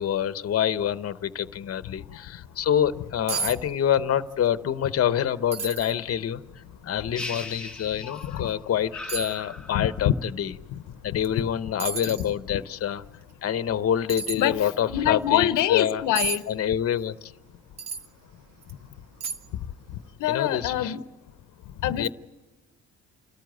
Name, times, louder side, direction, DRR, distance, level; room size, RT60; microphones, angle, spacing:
voice 1, 0.0-6.4 6.8-10.5 11.0-13.0 13.4-16.0 16.5-17.3 20.2-20.9 22.0-22.1, left 9 dB, 50° left, 13 dB, 1.0 m, -26 dB
sound 1, 2.9-3.0 3.3-3.6 3.8-4.4 4.8-4.9 5.5-5.9 6.6-6.7 8.2-8.3 9.1-9.4 11.2-11.4 11.8-12.3 14.1-14.4 16.1-16.4 17.8-18.1 18.6-18.7 19.2-19.6 19.9-20.0, right 5 dB, 55° right, 1.9 m, -31 dB
sound 2, 7.1-8.5 8.9-10.2, left 2 dB, 5° left, 1.3 m, -39 dB
voice 2, 8.0-8.5 9.7-10.1 10.7-10.8 11.4-11.5 12.5-12.6 14.4-16.4 20.2-21.0 21.8-22.1, left 12 dB, 85° left, 13 dB, 0.9 m, -25 dB
29.5 x 14.0 x 9.3 m, 1.3 s
cardioid pair, 90°, 30 cm